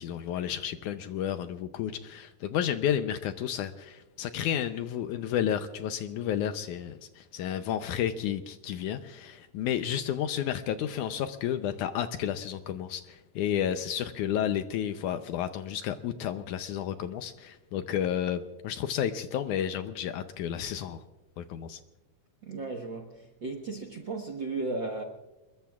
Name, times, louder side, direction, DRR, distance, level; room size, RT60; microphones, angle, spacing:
voice 1, 0.0-21.0 21.4-21.8, left 10 dB, 75° left, 1.9 m, -31 dB
voice 2, 22.4-25.0, right 3 dB, 55° right, 1.2 m, -35 dB
28.0 x 21.5 x 2.4 m
omnidirectional pair, 4.0 m